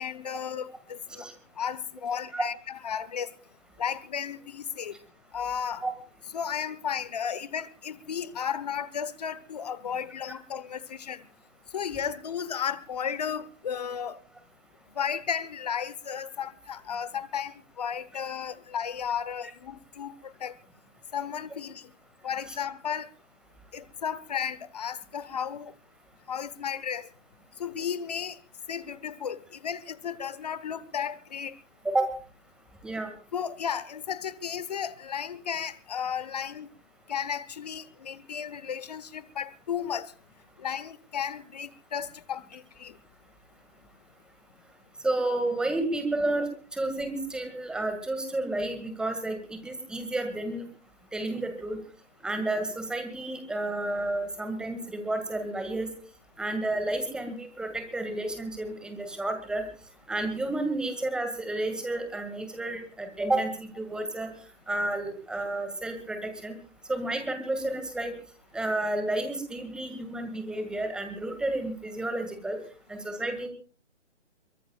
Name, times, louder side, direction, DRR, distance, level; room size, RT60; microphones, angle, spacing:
voice 1, 0.0-1.3 1.6-3.3 3.8-4.9 5.3-5.8 6.3-11.2 11.7-14.2 14.9-20.5 21.1-21.9 22.2-23.1 23.7-25.7 26.3-27.1 27.6-28.4 28.7-31.5 33.3-36.7 37.1-40.1 40.6-42.9, left 8 dB, 35° left, 1.0 m, -34 dB
voice 2, 45.0-50.6 51.1-51.8 52.2-55.9 56.4-59.6 60.1-64.3 64.7-66.5 66.9-68.1 68.5-72.6 72.9-73.5, right 2 dB, ahead, 1.9 m, -31 dB
23.0 x 23.0 x 2.3 m
figure-of-eight pair, 145°, 36 cm